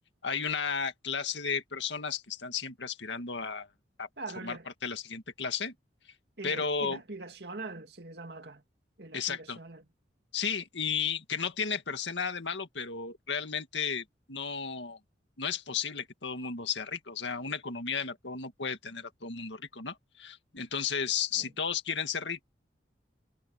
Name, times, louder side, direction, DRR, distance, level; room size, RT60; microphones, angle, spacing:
voice 1, 0.2-3.7 4.0-4.1 4.4-4.6 4.8-5.7 6.4-7.0 9.1-9.6 10.3-15.0 15.4-22.4, left 6 dB, 85° left, 2.0 m, -34 dB
voice 2, 4.2-4.7 6.4-8.6 9.0-9.9 21.4-21.5, right 3 dB, 65° right, 2.2 m, -43 dB
head